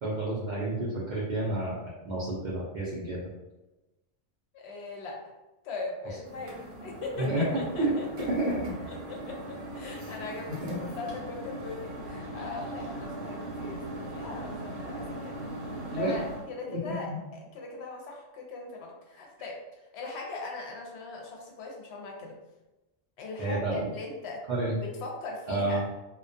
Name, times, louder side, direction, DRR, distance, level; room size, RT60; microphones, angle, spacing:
voice 1, 0.0-1.7 2.1-3.3 7.2-7.9 8.4-8.5 10.6-10.8 15.9-16.1 17.1-17.2 23.4-23.9 24.5-24.8 25.5-25.8, right 2 dB, 60° right, -7 dB, 0.5 m, -30 dB
voice 2, 4.5-5.2 5.6-6.5 6.8-8.3 8.9-15.4 15.9-16.2 16.6-17.1 17.5-19.6 19.9-22.3 23.2-24.4 24.8-25.8, left 3 dB, 65° left, -1 dB, 0.8 m, -39 dB
sound 1, 6.2-16.5, right 1 dB, 75° right, 1.0 m, -39 dB
2.2 x 2.2 x 2.5 m, 1.0 s
omnidirectional pair, 1.3 m